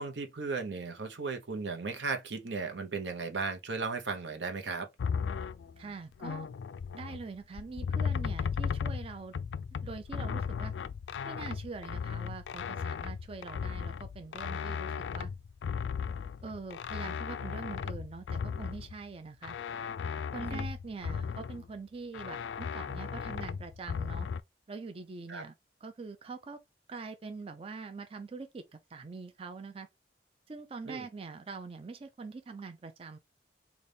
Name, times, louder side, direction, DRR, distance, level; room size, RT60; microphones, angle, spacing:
voice 1, 0.0-4.9 20.4-20.7 25.3-25.4 30.8-31.1, right 4 dB, 85° right, 0.9 m, -36 dB
sound 1, 5.0-7.2 7.6-19.0 19.4-21.7 22.1-24.4, left 6 dB, 85° left, 0.3 m, -36 dB
voice 2, 5.8-6.5 6.9-9.3 9.8-10.7 11.2-15.3 16.4-19.6 20.3-24.3 24.7-25.5 25.8-26.6 26.9-28.6 28.9-29.9 30.5-33.2, right 4 dB, 30° right, 0.4 m, -43 dB
4.0 x 2.4 x 3.3 m
head